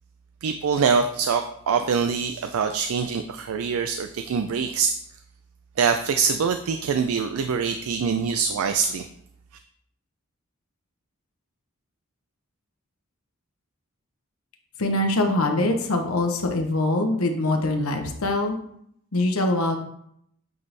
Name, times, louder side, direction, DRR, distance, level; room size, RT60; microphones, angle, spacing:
voice 1, 0.4-4.9 5.8-9.1, right 6 dB, 80° right, 8 dB, 0.4 m, -24 dB
voice 2, 14.8-18.6 19.1-19.8, left 2 dB, 85° left, 4 dB, 0.9 m, -23 dB
8.4 x 4.1 x 3.4 m, 0.72 s
head